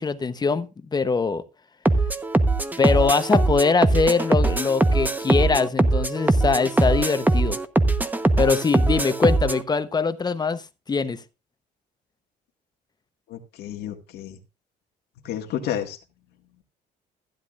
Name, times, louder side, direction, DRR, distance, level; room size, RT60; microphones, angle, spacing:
voice 1, 0.0-1.4 2.8-7.6 8.4-10.6 10.9-11.2, left 4 dB, 25° left, 0.9 m, -22 dB
sound 1, 1.8-9.6, right 2 dB, 10° right, 1.0 m, -21 dB
voice 2, 13.3-14.4 15.2-16.0, left 10 dB, 75° left, 1.7 m, -31 dB
15.5 x 10.5 x 2.5 m
cardioid pair, 110°, 17 cm